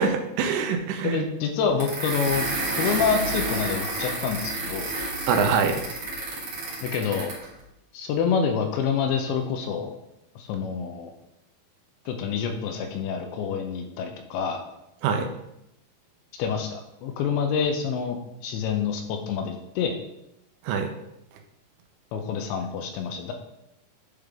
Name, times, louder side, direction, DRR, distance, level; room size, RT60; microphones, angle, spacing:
voice 1, 0.0-1.3 5.3-5.8 15.0-15.3 20.6-20.9, right 5 dB, 85° right, 5 dB, 3.0 m, -24 dB
voice 2, 1.0-4.9 6.8-7.3 7.9-10.0 10.4-11.1 12.1-14.6 16.3-20.0 22.1-23.3, left 6 dB, 85° left, 5 dB, 2.8 m, -27 dB
sound 1, 1.8-7.5, right 2 dB, 55° right, 1.9 m, -30 dB
10.0 x 3.6 x 3.5 m, 0.84 s
omnidirectional pair, 5.3 m